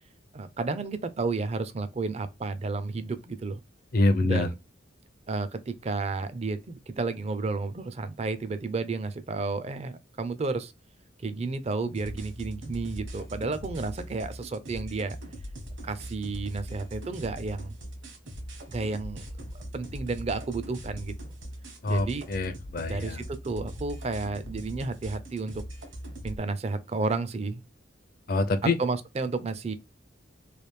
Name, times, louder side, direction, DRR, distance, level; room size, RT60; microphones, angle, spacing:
voice 1, 0.3-3.6 4.2-4.5 5.3-10.7 11.2-15.2 15.8-17.7 18.7-19.3 19.5-21.1 21.9-22.3 22.9-25.6 26.2-27.6 28.8-29.7, right 3 dB, 35° right, 0.4 m, -32 dB
voice 2, 3.9-4.5 21.8-23.2 28.3-28.8, left 2 dB, 50° left, 0.5 m, -25 dB
sound 1, 11.9-26.4, equal, 70° right, 1.2 m, -41 dB
3.2 x 2.5 x 3.2 m
head